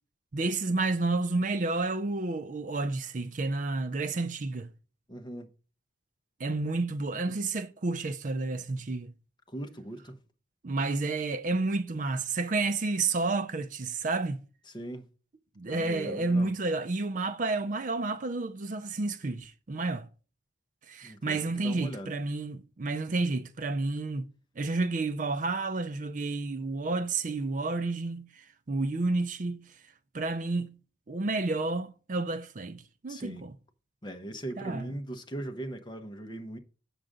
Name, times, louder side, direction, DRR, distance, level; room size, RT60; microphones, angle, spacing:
voice 1, 0.3-4.7 6.4-9.1 10.6-14.4 15.6-20.1 20.9-24.3 24.6-29.7 30.1-30.8 31.1-33.5 34.6-34.9, right 3 dB, 45° right, 0.5 m, -30 dB
voice 2, 5.1-5.5 9.5-10.2 14.7-15.1 15.7-16.5 21.0-22.1 33.1-33.4 34.0-36.6, right 1 dB, 25° left, 0.9 m, -39 dB
7.6 x 6.5 x 3.7 m
head